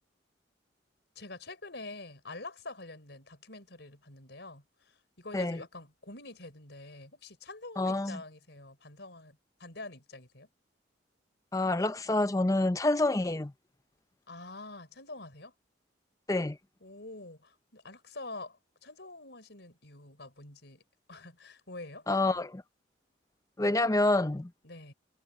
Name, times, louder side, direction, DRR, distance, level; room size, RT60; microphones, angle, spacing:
voice 1, 1.1-10.5 14.3-15.5 16.8-20.8 21.1-22.1 24.6-24.9, left 2 dB, 65° left, 5.1 m, -46 dB
voice 2, 7.8-8.2 11.5-13.5 16.3-16.6 22.1-22.6 23.6-24.5, left 2 dB, 15° left, 0.5 m, -27 dB
head